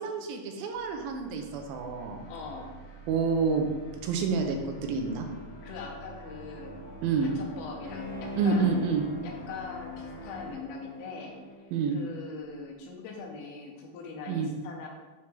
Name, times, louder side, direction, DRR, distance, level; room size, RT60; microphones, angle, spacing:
voice 1, 0.0-2.2 3.1-3.7 4.0-5.3 7.0-7.3 8.4-9.0 11.7-12.0 14.3-14.5, right 5 dB, 80° right, 4 dB, 2.4 m, -28 dB
sound 1, 0.7-10.5, right 1 dB, 25° left, 2.1 m, -47 dB
voice 2, 2.3-2.8 5.6-6.8 7.2-11.4 11.9-14.9, left 4 dB, 85° left, 1 dB, 2.9 m, -41 dB
Bowed string instrument, 7.8-12.4 12.8-12.9, left 3 dB, 55° left, 1.8 m, -43 dB
7.0 x 5.9 x 3.2 m, 1.2 s
omnidirectional pair, 4.4 m